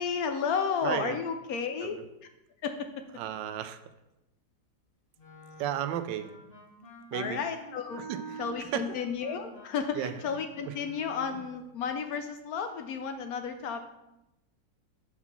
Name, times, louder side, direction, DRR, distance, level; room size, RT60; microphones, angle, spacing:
voice 1, 0.0-2.0 2.6-2.9 7.1-8.0 8.4-13.9, left 6 dB, 70° left, 7 dB, 0.9 m, -32 dB
voice 2, 0.8-1.2 1.8-2.0 3.2-3.8 5.6-6.3 7.1-7.4 8.0-8.9 9.9-10.1 10.7-10.8 11.3-11.4, right 10 dB, 80° right, 10 dB, 1.2 m, -34 dB
Wind instrument woodwind instrument, 5.2-11.6, right 2 dB, 30° left, 1.7 m, -48 dB
5.6 x 4.8 x 6.0 m, 0.92 s
omnidirectional pair, 2.0 m